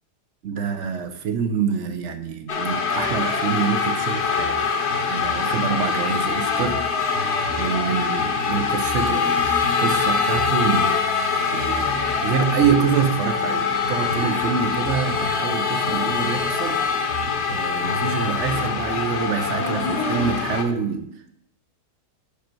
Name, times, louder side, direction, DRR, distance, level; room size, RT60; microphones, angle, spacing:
voice 1, 0.4-4.7 5.1-6.9 7.6-11.0 11.5-11.9 12.2-16.9 17.5-21.3, right 6 dB, 60° right, 0.8 m, -26 dB
sound 1, 2.5-20.6, left 5 dB, 50° left, 1.0 m, -23 dB
6.3 x 5.1 x 4.4 m
omnidirectional pair, 1.7 m